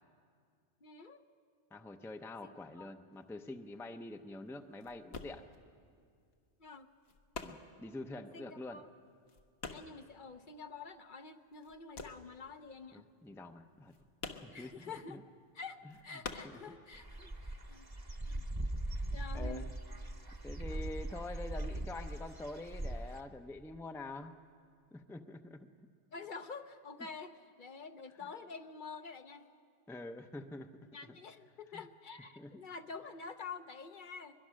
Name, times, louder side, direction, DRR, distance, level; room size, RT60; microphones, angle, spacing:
voice 1, 0.8-1.2 2.4-2.9 6.6-6.9 8.3-8.9 9.7-13.1 14.5-15.2 15.5-18.4 19.1-19.6 26.1-29.5 30.9-34.3, left 4 dB, 55° left, 8 dB, 0.9 m, -48 dB
voice 2, 1.7-5.4 7.4-8.8 12.9-13.9 14.4-15.2 15.8-16.2 16.5-16.6 19.3-19.7 20.4-24.3 24.9-25.9 29.9-31.2 31.7-31.8 32.4-32.6, left 2 dB, 5° left, 7 dB, 0.5 m, -46 dB
sound 1, 3.1-11.1 11.4-17.3 17.5-18.6, left 4 dB, 75° left, 1.3 m, -49 dB
Dog / Bird, 16.9-23.2, right 1 dB, 20° right, 1.0 m, -40 dB
22.5 x 21.5 x 6.3 m, 2.2 s
omnidirectional pair, 1.1 m